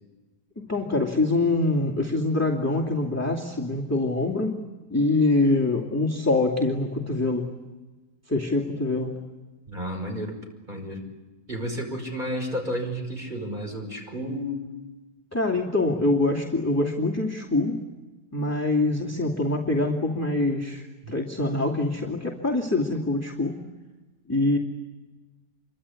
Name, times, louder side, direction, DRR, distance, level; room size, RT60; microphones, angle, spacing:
voice 1, 0.6-4.6 4.9-7.5 8.3-9.2 15.3-17.9 18.3-23.6 24.3-24.6, left 2 dB, 10° left, -1 dB, 2.6 m, -24 dB
voice 2, 9.7-10.4 10.7-11.0 11.5-14.6 21.0-21.1, equal, 25° right, 2 dB, 5.6 m, -31 dB
28.0 x 24.0 x 8.6 m, 1.2 s
omnidirectional pair, 1.9 m